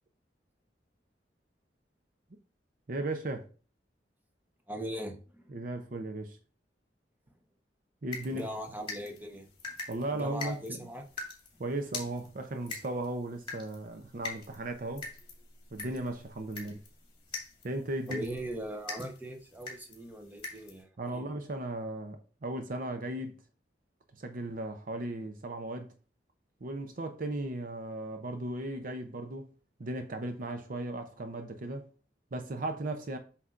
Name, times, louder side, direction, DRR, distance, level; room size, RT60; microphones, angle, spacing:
voice 1, 2.9-3.5 5.5-6.4 8.0-8.5 9.9-10.8 11.6-15.1 15.7-16.8 17.6-18.2 21.0-23.4 24.2-25.9 26.6-29.5 29.8-31.9 32.3-33.2, right 2 dB, 50° right, 0.6 m, -36 dB
voice 2, 4.7-5.5 8.3-9.4 10.1-11.0 18.1-21.3, right 1 dB, 10° right, 1.0 m, -40 dB
sound 1, 8.1-20.8, left 3 dB, 30° left, 2.3 m, -45 dB
8.0 x 5.7 x 2.5 m
head